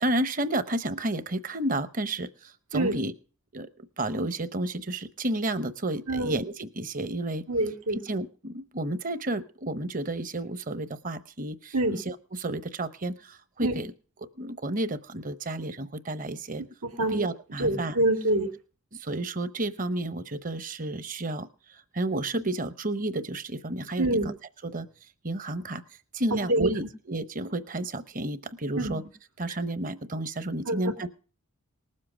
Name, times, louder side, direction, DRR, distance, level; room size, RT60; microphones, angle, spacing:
voice 1, 0.0-3.1 3.5-3.7 4.0-7.4 7.9-13.9 14.4-16.6 17.1-18.0 18.9-24.3 24.6-24.9 25.2-25.8 26.1-29.0 29.4-31.1, right 1 dB, 35° right, 14 dB, 0.8 m, -31 dB
voice 2, 7.5-8.0 11.7-12.0 13.6-13.7 16.8-17.2 17.6-18.5 24.0-24.3 26.3-26.7 28.7-28.9 30.7-30.8, right 1 dB, 90° right, 4 dB, 2.4 m, -25 dB
19.5 x 7.6 x 6.2 m, 0.38 s
head